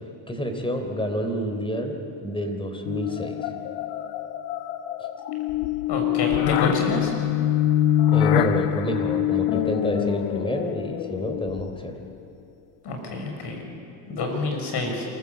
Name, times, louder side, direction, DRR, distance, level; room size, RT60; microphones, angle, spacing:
voice 1, 0.3-3.4 8.1-11.9, equal, 10° left, 5 dB, 3.7 m, -28 dB
sound 1, 2.9-11.9, left 12 dB, 80° left, 1.2 m, -25 dB
voice 2, 5.9-7.1 12.8-13.6 14.1-15.0, left 2 dB, 55° left, 2 dB, 6.4 m, -28 dB
26.5 x 15.5 x 8.3 m, 2.5 s
supercardioid pair, 90°, 49 cm